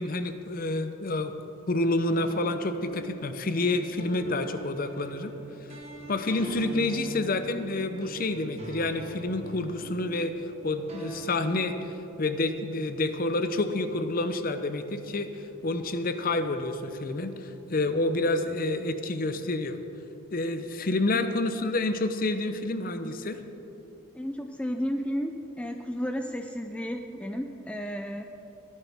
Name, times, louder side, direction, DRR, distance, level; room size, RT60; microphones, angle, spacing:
voice 1, 0.0-1.3 1.7-5.3 6.1-10.4 10.6-11.8 12.2-19.8 20.3-23.4, left 2 dB, 45° left, 9 dB, 0.6 m, -28 dB
sound 1, 2.1-11.9, right 2 dB, 30° right, 1.4 m, -42 dB
voice 2, 24.1-28.3, equal, 5° left, 5 dB, 0.4 m, -33 dB
18.0 x 9.8 x 3.5 m, 3.0 s
head